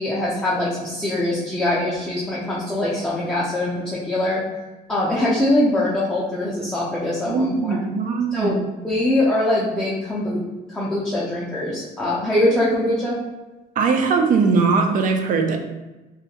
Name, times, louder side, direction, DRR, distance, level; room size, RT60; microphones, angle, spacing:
voice 1, 0.0-4.4 4.9-7.8 8.3-8.6 8.8-10.4 10.7-13.2, left 1 dB, 5° left, -7 dB, 0.4 m, -22 dB
voice 2, 7.2-8.6 13.8-15.6, right 4 dB, 50° right, 4 dB, 0.4 m, -20 dB
2.3 x 2.1 x 2.8 m, 1.1 s
cardioid pair, 110°, 17 cm